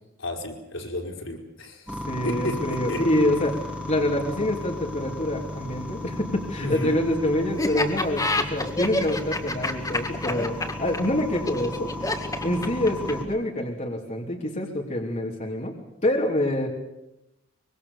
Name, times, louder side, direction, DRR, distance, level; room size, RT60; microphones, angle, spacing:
voice 1, 0.2-1.8 2.2-3.0 6.6-7.0, left 1 dB, 80° left, 1 dB, 4.7 m, -32 dB
sound 1, 1.9-13.2, left 2 dB, 5° right, 2.9 m, -35 dB
voice 2, 2.1-3.6 3.9-11.9 12.4-15.7 16.0-16.7, left 1 dB, 35° left, -1 dB, 3.1 m, -26 dB
Laughter, 7.6-13.3, left 2 dB, 15° left, 2.1 m, -27 dB
25.0 x 23.0 x 6.9 m, 0.93 s
head